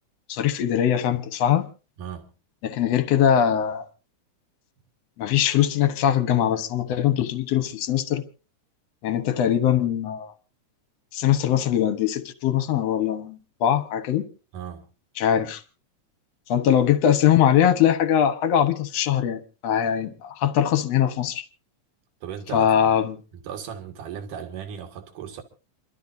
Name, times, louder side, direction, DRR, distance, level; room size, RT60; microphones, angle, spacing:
voice 1, 0.3-1.7 2.6-3.9 5.2-8.2 9.0-10.3 11.1-14.3 15.2-15.6 16.5-21.4 22.5-23.1, left 10 dB, 60° left, 2.0 m, -21 dB
voice 2, 2.0-2.3 14.5-14.9 22.2-22.9 23.3-25.4, right 8 dB, 85° right, 3.3 m, -36 dB
28.5 x 12.5 x 2.7 m
omnidirectional pair, 3.6 m